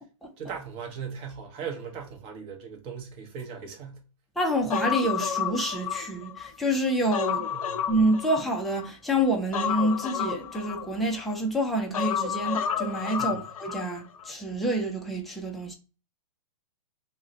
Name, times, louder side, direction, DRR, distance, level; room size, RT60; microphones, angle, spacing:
voice 1, 0.4-4.0 7.5-7.9 13.2-13.4, right 6 dB, 30° right, 0.7 m, -38 dB
voice 2, 4.4-7.5 7.9-15.7, right 1 dB, ahead, 0.4 m, -27 dB
Human voice, 4.7-6.5 6.9-8.9 9.5-11.3 11.9-13.9 14.2-14.3, left 8 dB, 75° left, 0.4 m, -30 dB
2.3 x 2.1 x 3.8 m
hypercardioid pair, 125°, 18 cm